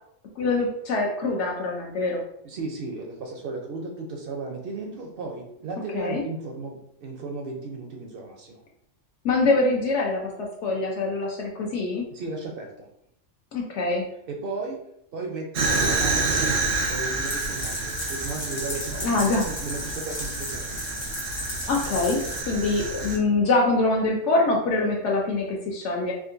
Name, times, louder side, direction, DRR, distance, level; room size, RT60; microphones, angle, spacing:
voice 1, 0.4-2.2 5.9-6.2 9.2-12.0 13.5-14.0 19.0-19.5 21.6-26.1, left 3 dB, 70° left, -1 dB, 0.9 m, -24 dB
voice 2, 2.4-8.6 12.1-12.9 14.3-14.8 15.1-20.9, right 3 dB, 60° right, 1 dB, 0.6 m, -35 dB
Fire, 15.5-23.2, right 3 dB, 80° right, 1.1 m, -28 dB
sound 1, 17.2-22.4, left 1 dB, 85° left, 1.5 m, -35 dB
3.6 x 2.5 x 2.5 m, 0.74 s
omnidirectional pair, 1.3 m